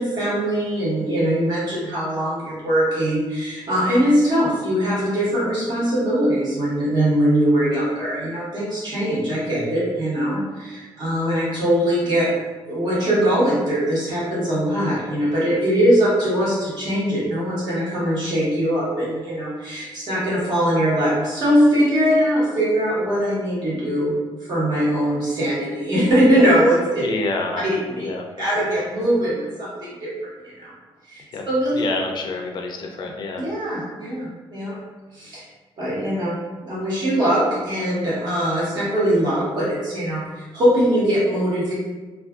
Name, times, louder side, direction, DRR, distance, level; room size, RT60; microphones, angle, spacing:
voice 1, 0.0-12.3 12.6-24.1 24.4-27.0 27.6-28.1 28.4-30.1 30.6-30.7 31.1-31.8 33.4-34.7 35.1-35.4 35.8-36.3 36.7-41.7, equal, 50° right, -8 dB, 1.2 m, -21 dB
voice 2, 27.0-27.7 27.9-28.7 29.0-29.1 31.3-31.4 31.7-33.4, left 3 dB, 50° left, 2 dB, 0.4 m, -28 dB
2.4 x 2.3 x 2.4 m, 1.3 s
cardioid pair, 135°, 10 cm